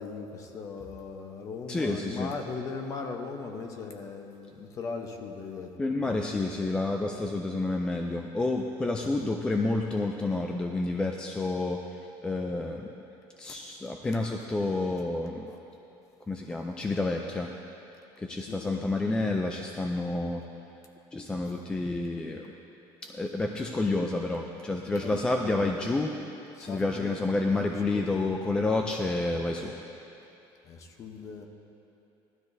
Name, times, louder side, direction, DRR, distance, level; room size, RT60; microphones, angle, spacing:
voice 1, 0.0-5.7 6.0-6.2 8.8-9.1 13.5-13.6 15.5-15.6 18.5-18.9 25.0-25.4 26.6-27.2 27.9-28.2 30.7-31.5, left 4 dB, 35° left, 4 dB, 0.8 m, -39 dB
voice 2, 1.7-2.3 5.8-11.8 12.2-13.0 13.4-15.5 16.3-17.5 18.2-20.4 21.1-22.4 23.0-26.2 26.6-29.7, left 2 dB, 10° left, 2 dB, 0.3 m, -29 dB
16.5 x 12.5 x 2.6 m, 2.9 s
cardioid pair, 180°, 10 cm